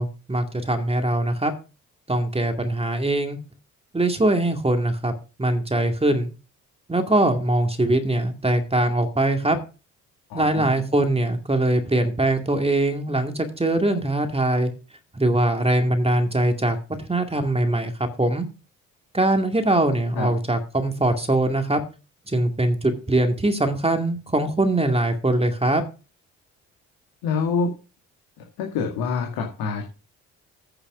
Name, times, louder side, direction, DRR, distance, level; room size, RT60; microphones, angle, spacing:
voice 1, 0.0-1.5 2.1-3.4 3.9-5.1 5.4-6.3 6.9-9.6 10.3-14.7 15.2-16.8 17.1-17.9 18.2-18.5 19.1-21.8 22.3-25.8, right 1 dB, 15° right, 5 dB, 2.3 m, -22 dB
voice 2, 10.3-10.7 20.1-20.3 27.2-27.7 28.4-29.8, left 5 dB, 65° left, 1 dB, 2.1 m, -26 dB
9.0 x 6.4 x 6.1 m, 0.33 s
figure-of-eight pair, 45°, 39 cm